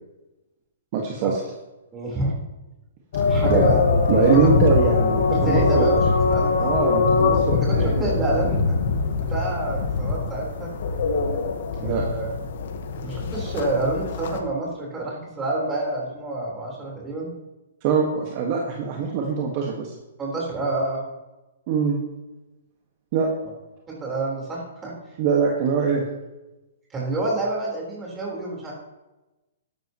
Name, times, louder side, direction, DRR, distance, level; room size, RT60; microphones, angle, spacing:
voice 1, 0.9-1.4 3.5-3.6 4.1-5.9 6.6-8.1 11.8-12.0 17.8-19.9 21.7-22.0 23.1-23.3 25.2-26.0, right 5 dB, 40° right, -1 dB, 1.7 m, -22 dB
voice 2, 1.9-2.3 3.2-4.2 5.3-6.0 6.3-6.6 7.6-8.8 9.2-10.7 11.8-12.3 13.0-17.3 20.2-21.0 23.9-24.9 26.9-28.7, right 2 dB, 15° right, -3 dB, 4.3 m, -28 dB
sound 1, 3.1-14.4, left 4 dB, 60° left, 1.5 m, -22 dB
13.0 x 11.5 x 3.1 m, 1.0 s
hypercardioid pair, 150°, 0 cm